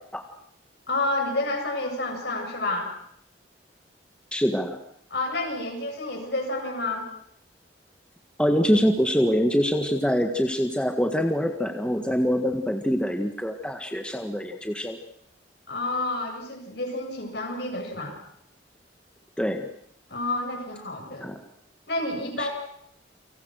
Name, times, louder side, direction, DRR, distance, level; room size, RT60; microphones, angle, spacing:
voice 1, 0.9-2.9 5.1-7.1 15.7-18.2 20.1-21.3 21.9-22.5, left 2 dB, 60° left, 2 dB, 7.7 m, -29 dB
voice 2, 4.3-4.8 8.4-15.0 19.4-19.7 21.2-21.4 22.4-22.5, equal, 5° left, 4 dB, 1.7 m, -24 dB
29.5 x 25.5 x 6.4 m, 0.69 s
head